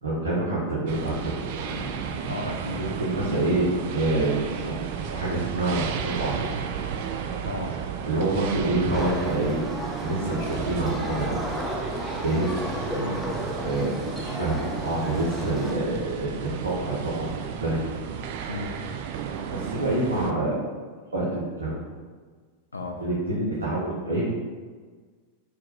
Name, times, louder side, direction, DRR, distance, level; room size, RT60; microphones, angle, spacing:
voice 1, 0.0-2.3 2.8-4.8 5.1-6.6 8.0-9.7 10.0-11.5 12.2-12.5 13.6-16.3 16.6-17.8 19.5-20.8 21.1-21.9 23.0-24.3, right 2 dB, 75° right, -9 dB, 1.1 m, -27 dB
sound 1, 0.9-20.3, right 7 dB, 50° right, 0.3 m, -34 dB
voice 2, 2.3-2.9 7.4-7.8 12.3-12.5 13.0-13.3 18.5-18.7 22.7-23.0, left 2 dB, 75° left, 3 dB, 0.5 m, -34 dB
sound 2, 8.9-15.7, equal, 5° right, 0.7 m, -33 dB
4.5 x 2.6 x 3.9 m, 1.5 s
figure-of-eight pair, 90°, 0 cm